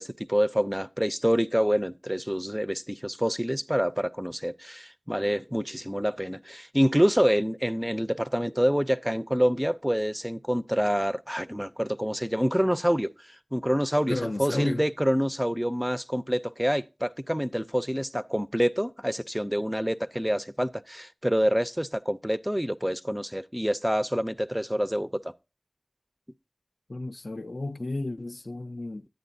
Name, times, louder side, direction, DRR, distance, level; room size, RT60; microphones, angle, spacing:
voice 1, 0.0-25.3, equal, 5° right, 0.4 m, -27 dB
voice 2, 14.1-14.8 26.9-29.1, left 2 dB, 65° left, 0.4 m, -33 dB
10.0 x 8.9 x 2.6 m
wide cardioid pair, 50°, 0 cm